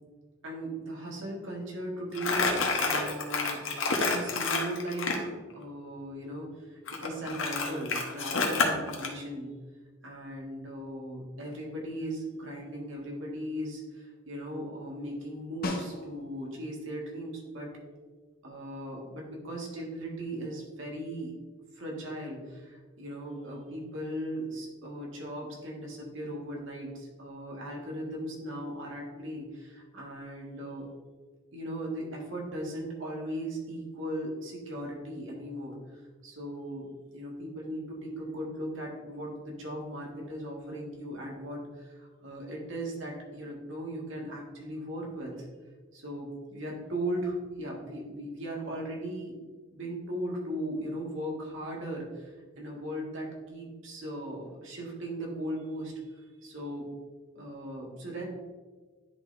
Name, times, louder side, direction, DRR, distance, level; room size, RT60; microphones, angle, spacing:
voice 1, 0.4-2.5 2.8-3.6 4.0-5.3 5.5-9.5 10.0-17.7 18.4-21.3 21.7-30.9 31.5-36.9 37.1-45.5 45.9-49.4 49.7-56.9 57.4-58.2, right 1 dB, 80° right, -2 dB, 1.8 m, -38 dB
Crumpling crinkling, 2.1-5.2 6.9-9.1, left 4 dB, 85° left, 1.1 m, -29 dB
Snare drum, 15.6-16.5 21.0-21.1, left 2 dB, 50° left, 1.0 m, -36 dB
10.0 x 4.1 x 3.4 m, 1.4 s
head